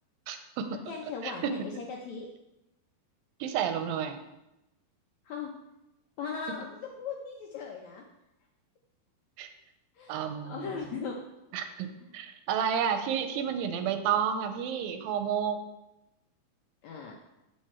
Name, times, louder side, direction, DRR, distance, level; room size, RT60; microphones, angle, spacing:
voice 1, 0.3-0.7 1.2-1.5 3.4-4.2 9.4-9.5 10.1-10.8 11.5-11.9 12.1-15.6, right 8 dB, 85° right, 7 dB, 2.4 m, -30 dB
voice 2, 0.9-2.3 5.3-5.5 6.2-8.0 9.9-11.2 12.0-12.1 16.8-17.1, left 5 dB, 80° left, 0 dB, 1.6 m, -38 dB
8.0 x 7.4 x 4.3 m, 0.92 s
omnidirectional pair, 4.3 m